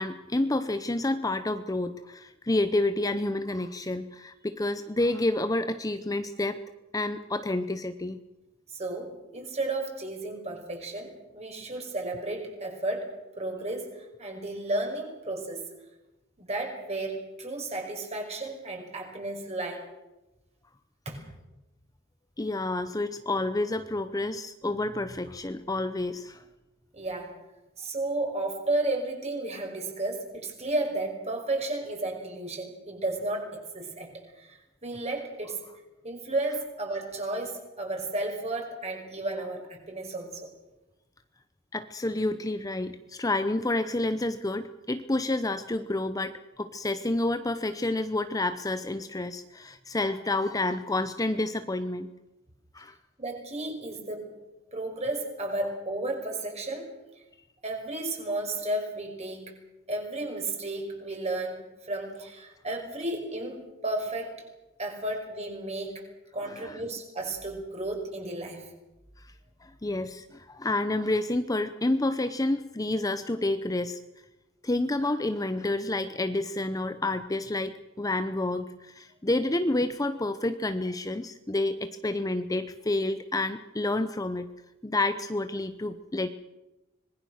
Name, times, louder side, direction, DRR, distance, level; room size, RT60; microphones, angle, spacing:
voice 1, 0.0-6.6 6.9-8.2 22.4-26.4 41.7-52.1 52.7-53.0 66.4-66.8 69.6-74.0 74.6-84.5 84.8-86.3, left 2 dB, 15° left, 10 dB, 0.7 m, -29 dB
voice 2, 8.7-15.6 16.4-19.8 21.1-21.2 26.9-27.3 27.8-35.6 36.0-40.5 53.2-54.3 54.7-56.9 57.6-59.5 59.9-63.6 63.8-64.3 64.8-66.0 66.3-68.7, right 2 dB, 35° right, 2 dB, 5.7 m, -33 dB
25.5 x 20.5 x 6.5 m, 1.0 s
head